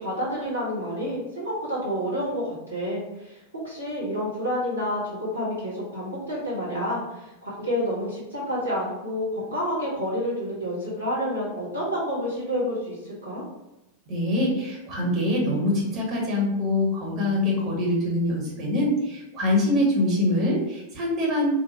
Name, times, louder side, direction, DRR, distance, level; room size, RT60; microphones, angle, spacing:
voice 1, 0.0-13.4, equal, 75° right, -6 dB, 1.1 m, -29 dB
voice 2, 14.1-21.5, left 1 dB, 30° right, -3 dB, 1.2 m, -24 dB
3.5 x 2.2 x 3.1 m, 0.97 s
figure-of-eight pair, 90°, 0 cm